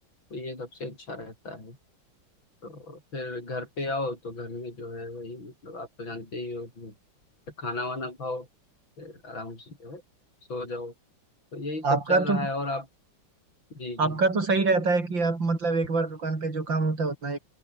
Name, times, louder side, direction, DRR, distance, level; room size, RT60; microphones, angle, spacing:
voice 1, 0.3-1.8 2.6-6.9 7.6-8.5 9.0-10.0 10.5-10.9 11.5-12.9 13.7-14.2, left 2 dB, 90° left, 8.9 m, -35 dB
voice 2, 11.8-12.5 14.0-17.4, right 3 dB, 75° right, 5.4 m, -25 dB
omnidirectional pair, 2.1 m